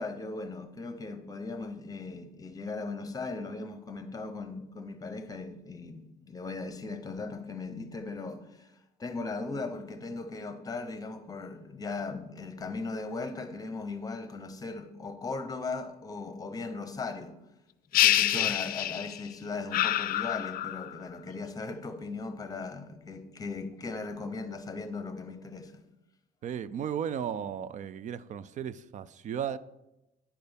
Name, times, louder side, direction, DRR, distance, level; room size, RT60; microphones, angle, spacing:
voice 1, 0.0-17.4 17.9-25.8, left 3 dB, 20° left, 0.9 m, -38 dB
sound 1, 17.9-19.3 19.7-21.0, left 13 dB, 60° left, 0.4 m, -26 dB
voice 2, 26.4-29.6, right 8 dB, 45° right, 0.4 m, -35 dB
10.0 x 4.3 x 5.2 m
cardioid pair, 110°, 17 cm